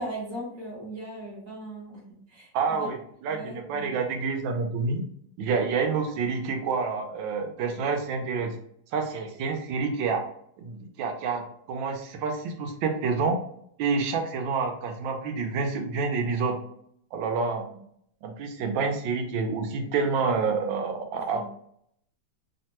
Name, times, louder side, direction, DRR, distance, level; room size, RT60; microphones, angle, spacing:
voice 1, 0.0-2.0 2.3-2.9 3.3-3.9 17.7-17.8 19.8-19.9 21.1-21.4, right 1 dB, 55° right, -4 dB, 1.0 m, -38 dB
voice 2, 2.5-5.0 5.4-8.5 8.9-10.2 10.6-13.4 13.8-16.6 17.1-17.6 18.2-21.5, right 4 dB, 80° right, 4 dB, 1.3 m, -28 dB
3.4 x 2.1 x 2.8 m, 0.69 s
omnidirectional pair, 2.2 m